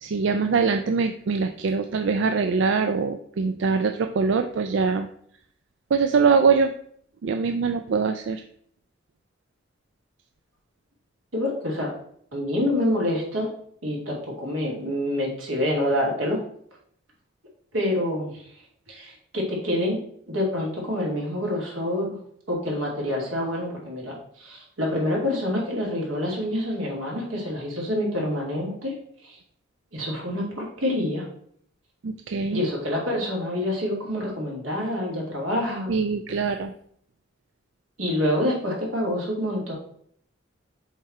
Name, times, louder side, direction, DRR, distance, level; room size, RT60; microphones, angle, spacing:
voice 1, 0.0-5.1 5.9-6.7 7.2-8.4 32.0-32.6 35.9-36.7, right 5 dB, 65° right, 7 dB, 0.4 m, -23 dB
voice 2, 11.3-11.9 12.3-13.5 13.8-16.4 17.7-18.4 18.9-20.0 20.3-22.2 22.5-29.0 29.2-29.4 29.9-31.3 32.5-36.0 38.0-39.7, left 1 dB, 90° right, -3 dB, 2.5 m, -27 dB
7.3 x 3.3 x 4.3 m, 0.64 s
head